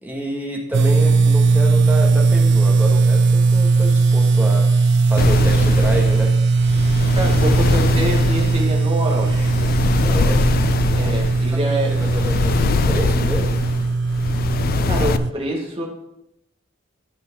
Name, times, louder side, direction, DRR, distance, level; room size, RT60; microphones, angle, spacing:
voice 1, 0.0-4.7 5.1-6.3 10.0-10.5 10.9-11.1 11.5-13.5, right 1 dB, 10° right, -1 dB, 1.6 m, -28 dB
sound 1, 0.7-15.3, right 4 dB, 55° right, 0.4 m, -18 dB
sound 2, 5.2-15.2, left 4 dB, 45° left, 0.4 m, -23 dB
voice 2, 7.2-9.5 10.9-11.9 14.9-15.8, right 1 dB, 25° right, -3 dB, 1.7 m, -25 dB
11.5 x 6.0 x 3.8 m, 0.84 s
head